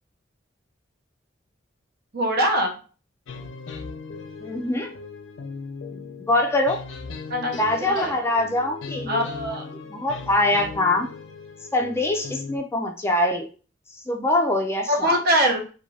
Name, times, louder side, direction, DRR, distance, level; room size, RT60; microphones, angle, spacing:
voice 1, 2.1-2.7 7.3-8.2 9.1-9.6 14.9-15.7, equal, 55° right, 2 dB, 0.7 m, -23 dB
sound 1, 3.3-12.6, left 4 dB, 90° left, 0.5 m, -38 dB
voice 2, 4.4-4.9 5.9-6.8 7.6-9.3 9.9-11.1 11.7-13.5 14.1-15.2, left 1 dB, 15° left, 3 dB, 0.3 m, -23 dB
2.4 x 2.2 x 3.1 m, 0.37 s
head